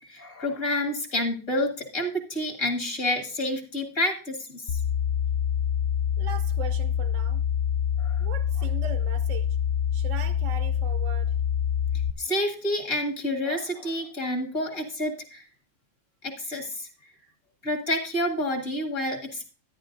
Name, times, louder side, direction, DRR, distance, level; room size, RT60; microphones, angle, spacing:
voice 1, 0.0-4.8 8.0-8.2 12.2-15.4 16.2-16.9 17.6-19.5, left 1 dB, 50° left, 2.0 m, -29 dB
sound 1, 4.7-12.1, left 9 dB, 75° left, 0.6 m, -26 dB
voice 2, 6.2-7.4 8.2-9.6 9.9-11.4, right 8 dB, 65° right, 0.8 m, -39 dB
13.0 x 9.9 x 2.5 m
omnidirectional pair, 1.7 m